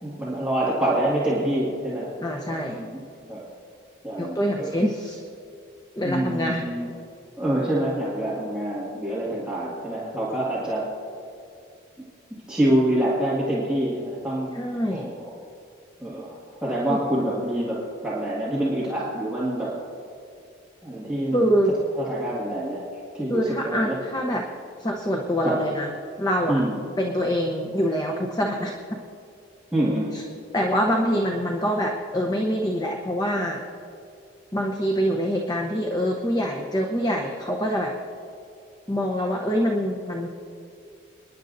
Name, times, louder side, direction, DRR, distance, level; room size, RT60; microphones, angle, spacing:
voice 1, 0.0-2.1 2.5-2.9 3.3-3.4 4.0-4.8 6.0-6.9 7.4-10.9 12.3-14.6 14.9-15.3 16.0-19.8 20.8-21.6 22.0-22.9 23.1-24.0 25.4-25.6 26.5-26.8 29.7-30.2, right 1 dB, 5° right, -9 dB, 1.9 m, -26 dB
voice 2, 2.2-2.8 4.2-5.2 6.0-6.6 14.5-15.1 16.9-17.0 21.3-21.7 23.3-24.4 24.8-25.9 26.2-26.6 27.0-28.7 30.1-30.2 30.5-33.6 34.5-37.9 38.9-40.3, equal, 20° left, 1 dB, 0.8 m, -25 dB
29.5 x 10.5 x 2.7 m, 2.4 s
head